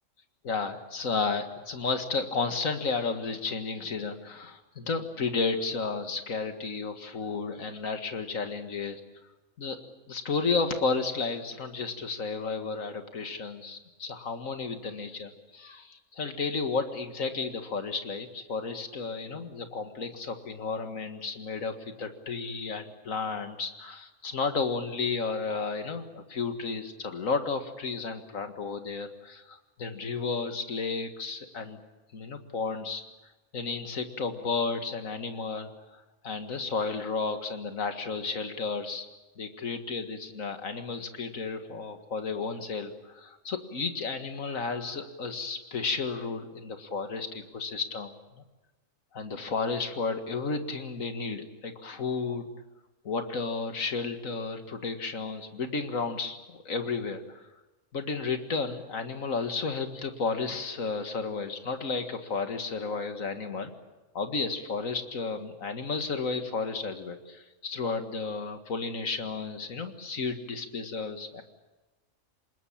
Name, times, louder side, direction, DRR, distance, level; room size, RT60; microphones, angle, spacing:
voice 1, 0.4-9.0 9.6-9.8 10.1-31.8 32.1-33.0 33.5-39.1 39.4-48.4 49.1-52.5 53.0-57.5 57.9-63.7 64.1-71.4, left 4 dB, 80° left, 7 dB, 2.2 m, -32 dB
25.5 x 21.0 x 8.7 m, 1.1 s
omnidirectional pair, 1.4 m